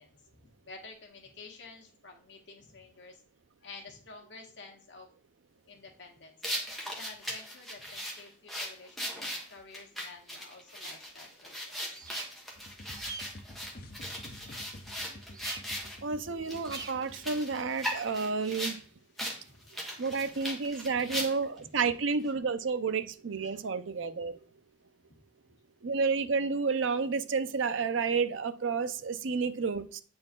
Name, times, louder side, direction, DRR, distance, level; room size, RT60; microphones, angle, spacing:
voice 1, 0.0-3.2 3.6-5.1 5.6-6.4 6.8-12.0 19.1-20.1 20.3-20.4 20.8-21.2 21.6-21.7 23.4-23.6 25.1-25.2, left 3 dB, 65° left, 1.6 m, -51 dB
sound 1, 6.4-16.0 16.5-18.8 19.2-19.4 19.7-21.6, equal, ahead, 1.3 m, -38 dB
sound 2, 11.9-12.3 12.8-13.3 15.3-15.6 16.6-16.9, right 6 dB, 20° right, 0.3 m, -43 dB
sound 3, 12.6-18.2, left 1 dB, 50° left, 0.9 m, -49 dB
voice 2, 16.0-18.8 20.0-24.4 25.8-30.0, right 5 dB, 85° right, 0.6 m, -30 dB
8.8 x 4.4 x 3.7 m
head